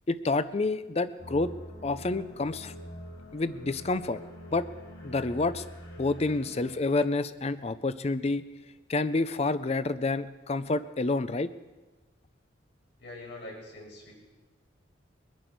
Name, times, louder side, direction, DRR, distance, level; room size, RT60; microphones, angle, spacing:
voice 1, 0.1-1.5 1.8-2.7 3.3-4.2 4.5-4.7 5.0-5.6 6.0-8.4 8.9-11.5, left 3 dB, 30° left, 14 dB, 0.5 m, -28 dB
sound 1, 1.2-6.7, equal, 80° left, 5.3 m, -45 dB
voice 2, 13.0-14.1, left 2 dB, 60° left, -3 dB, 5.3 m, -43 dB
23.0 x 10.5 x 4.6 m, 1.2 s
head